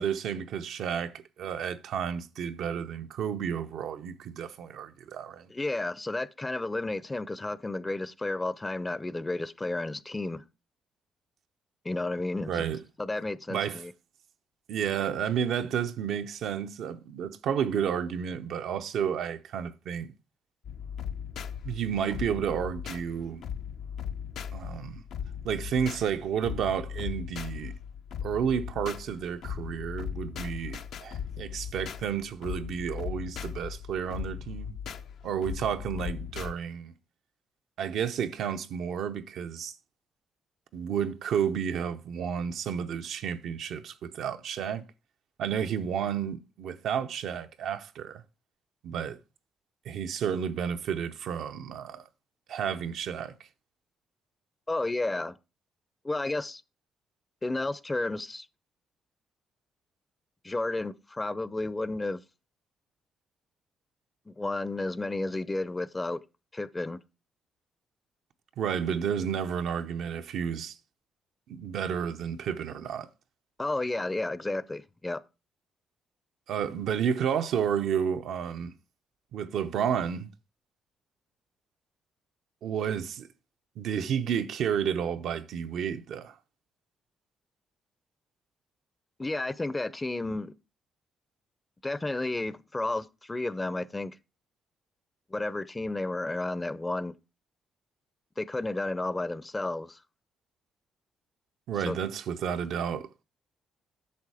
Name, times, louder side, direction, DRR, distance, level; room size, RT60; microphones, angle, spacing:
voice 1, 0.0-5.5 12.5-12.8 13.5-13.8 14.7-20.1 21.6-23.5 24.5-25.0 25.4-27.7 28.2-34.8 35.2-36.9 37.8-39.7 40.7-44.9 45.4-48.2 48.8-49.2 49.9-52.0 52.5-53.3 68.6-70.8 71.5-73.1 76.5-78.7 79.3-80.3 82.6-83.3 83.8-86.4 101.7-103.2, right 8 dB, 75° right, 0.7 m, -31 dB
voice 2, 5.5-10.4 11.8-12.6 13.0-13.9 54.7-55.4 56.0-56.6 57.4-58.5 60.4-62.2 64.3-66.2 66.5-67.0 73.6-75.2 89.2-90.6 91.8-94.2 95.3-97.1 98.4-100.0 101.9-102.0, left 2 dB, 20° left, 0.6 m, -32 dB
sound 1, 20.6-36.5, left 8 dB, 75° left, 0.7 m, -38 dB
8.6 x 6.3 x 4.8 m
cardioid pair, 90°, 0 cm